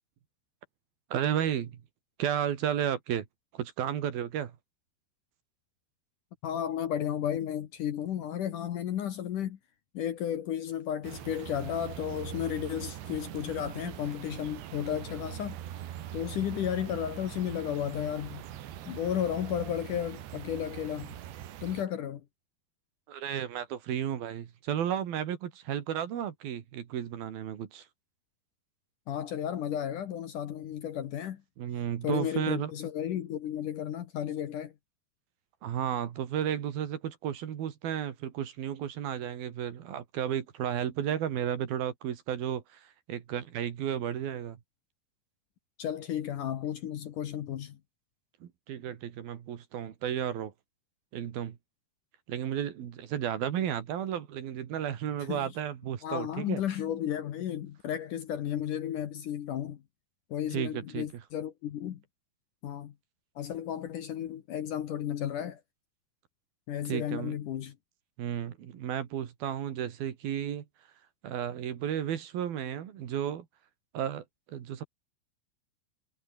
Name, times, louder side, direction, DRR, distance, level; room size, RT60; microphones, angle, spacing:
voice 1, 1.1-1.7 2.2-3.3 3.5-4.5 23.1-27.9 31.6-32.7 35.6-44.6 48.4-50.5 51.1-51.6 52.3-56.6 60.5-61.1 66.9-67.4 68.2-70.7 71.2-73.5 73.9-74.9, right 9 dB, 65° right, 3.7 m, -33 dB
voice 2, 6.4-9.6 9.9-15.6 16.1-18.4 18.9-21.2 21.6-22.2 29.1-31.4 32.0-34.7 45.8-47.8 55.3-55.5 56.0-59.8 60.3-62.0 62.6-62.9 63.4-65.6 66.7-67.8, left 10 dB, 60° left, 2.5 m, -33 dB
sound 1, 11.0-21.8, right 12 dB, 85° right, 4.1 m, -42 dB
omnidirectional pair, 4.9 m